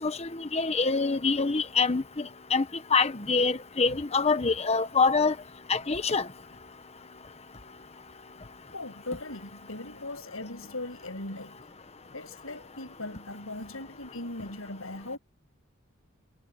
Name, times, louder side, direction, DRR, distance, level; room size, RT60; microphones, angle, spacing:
voice 1, 0.0-2.6 2.9-5.3 5.7-6.3, left 4 dB, 30° left, 1.1 m, -25 dB
voice 2, 8.7-11.5 12.1-15.2, left 2 dB, 75° left, 6.8 m, -39 dB
head